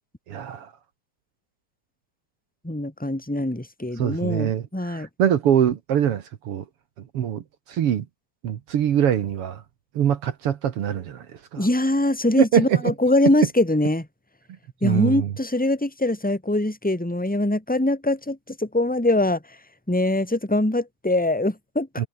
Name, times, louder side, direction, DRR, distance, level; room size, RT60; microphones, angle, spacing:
voice 1, 0.3-0.7 4.0-6.7 7.1-8.1 8.4-9.6 10.0-11.3 11.5-11.7 12.4-12.9 14.8-15.3 22.0-22.1, right 9 dB, 55° right, 1.8 m, -23 dB
voice 2, 2.6-5.1 11.6-14.1 14.8-19.4 19.9-21.9, left 1 dB, ahead, 3.9 m, -23 dB
omnidirectional pair, 3.7 m